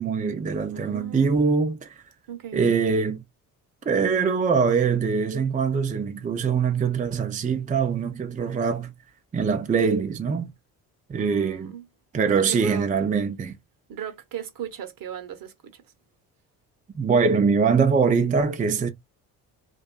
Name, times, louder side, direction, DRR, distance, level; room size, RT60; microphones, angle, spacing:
voice 1, 0.0-2.0 2.5-3.2 3.9-8.9 9.3-10.5 11.1-11.7 12.1-13.6 16.9-18.9, right 5 dB, 20° right, 0.5 m, -23 dB
voice 2, 0.7-1.4 2.3-2.7 11.2-11.9 12.4-12.9 13.9-15.9, right 9 dB, 50° right, 0.8 m, -37 dB
2.5 x 2.3 x 2.3 m
hypercardioid pair, 55°, 43 cm